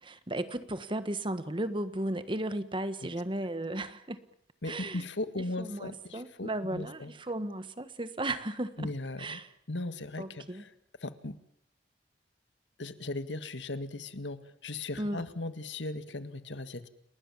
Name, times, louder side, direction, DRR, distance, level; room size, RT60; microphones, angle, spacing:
voice 1, 0.0-4.2 4.6-5.0 5.4-8.9 9.2-9.5 10.2-10.6 15.0-15.2, right 1 dB, 30° right, 11 dB, 1.5 m, -35 dB
voice 2, 4.6-7.1 8.8-9.4 9.7-10.7 11.0-11.4 12.8-16.9, left 2 dB, 90° left, 11 dB, 1.8 m, -38 dB
29.5 x 20.0 x 7.3 m, 0.74 s
head